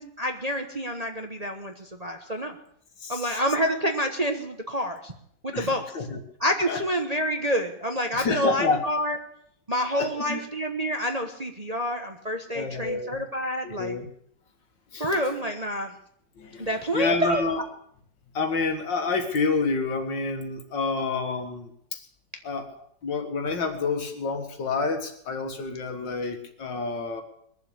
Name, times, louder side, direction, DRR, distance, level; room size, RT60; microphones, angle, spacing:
voice 1, 0.0-2.5 3.1-5.1 5.4-5.8 6.4-9.2 9.7-13.9 15.0-15.9 16.6-17.4, equal, 25° right, 4 dB, 1.1 m, -28 dB
voice 2, 3.0-3.4 5.5-6.2 6.7-6.8 8.1-8.8 10.0-10.4 12.5-13.2 13.6-14.1 14.9-15.2 16.4-17.6 18.3-22.0 22.4-27.2, left 4 dB, 70° left, 6 dB, 2.4 m, -29 dB
22.0 x 7.4 x 8.2 m, 0.68 s
omnidirectional pair, 2.0 m